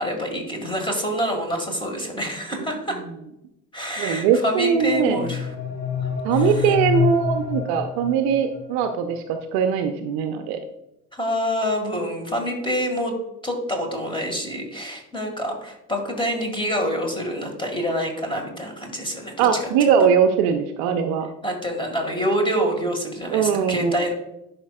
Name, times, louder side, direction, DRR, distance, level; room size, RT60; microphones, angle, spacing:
voice 1, 0.0-3.0 3.7-5.5 6.0-6.7 11.1-13.2 13.4-19.9 21.4-24.1, equal, 10° left, 3 dB, 1.9 m, -27 dB
voice 2, 4.0-5.3 6.2-10.6 19.4-21.3 23.3-23.9, right 7 dB, 50° right, 7 dB, 0.7 m, -21 dB
sound 1, 4.8-8.7, left 7 dB, 65° left, 1.8 m, -27 dB
11.0 x 5.1 x 2.4 m, 0.87 s
figure-of-eight pair, 65°, 46 cm